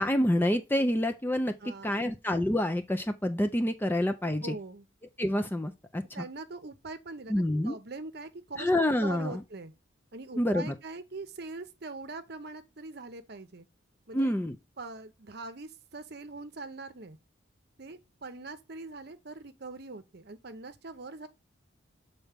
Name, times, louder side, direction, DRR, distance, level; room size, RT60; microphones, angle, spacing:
voice 1, 0.0-4.5 5.2-6.2 7.3-7.8 8.6-9.4 10.4-10.7 14.1-14.6, left 1 dB, 10° left, 0.4 m, -28 dB
voice 2, 1.6-2.1 4.2-4.9 6.1-8.7 9.0-9.7 10.1-13.7 14.1-14.3 14.8-17.2 17.8-21.3, right 3 dB, 50° right, 0.8 m, -42 dB
7.0 x 4.1 x 3.4 m
head